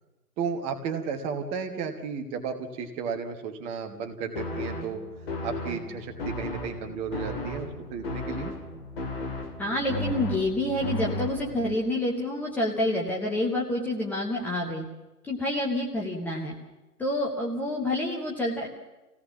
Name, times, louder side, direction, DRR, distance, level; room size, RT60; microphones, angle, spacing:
voice 1, 0.4-5.0 5.4-8.5, right 6 dB, 15° right, 6 dB, 1.2 m, -33 dB
sound 1, 4.3-11.7, left 2 dB, 35° left, 2.7 m, -34 dB
voice 2, 9.6-14.9 15.2-16.5 17.0-18.7, left 1 dB, 5° left, -3 dB, 1.1 m, -28 dB
27.0 x 17.0 x 7.1 m, 1.1 s
figure-of-eight pair, 130°, 46 cm